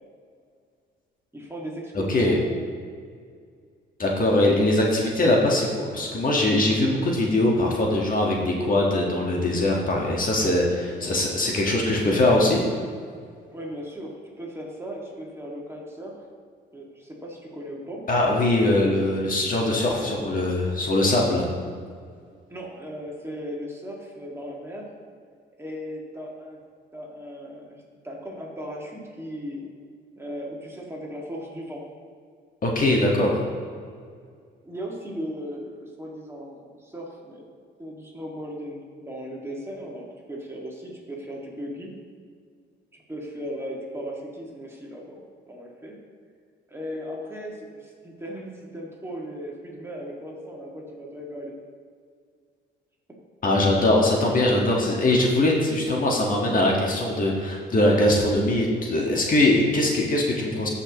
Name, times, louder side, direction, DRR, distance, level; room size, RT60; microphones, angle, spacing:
voice 1, 1.3-2.6 10.9-11.2 13.5-16.2 16.7-18.0 22.5-24.9 25.6-26.6 26.9-29.6 30.2-31.8 34.7-37.5 37.8-41.9 42.9-46.0 46.7-51.5 53.1-53.2, equal, 10° right, -3 dB, 2.0 m, -37 dB
voice 2, 1.9-2.3 4.0-12.6 18.1-21.5 32.6-33.3 53.4-60.7, left 1 dB, 45° left, -1 dB, 1.6 m, -21 dB
14.5 x 5.8 x 3.0 m, 2.1 s
cardioid pair, 90°, 20 cm